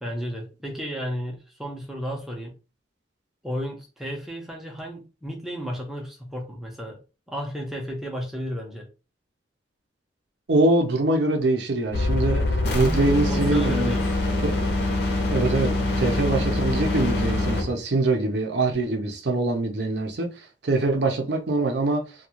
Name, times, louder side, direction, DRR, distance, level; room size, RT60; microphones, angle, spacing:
voice 1, 0.0-2.5 3.4-7.0 7.3-8.9 13.3-14.2, equal, ahead, 0.5 m, -33 dB
voice 2, 10.5-12.4 12.7-14.0 15.3-20.3 20.6-22.0, right 2 dB, 65° right, 0.6 m, -23 dB
sound 1, 11.9-17.7, left 2 dB, 55° left, 0.7 m, -24 dB
2.4 x 2.3 x 2.9 m
head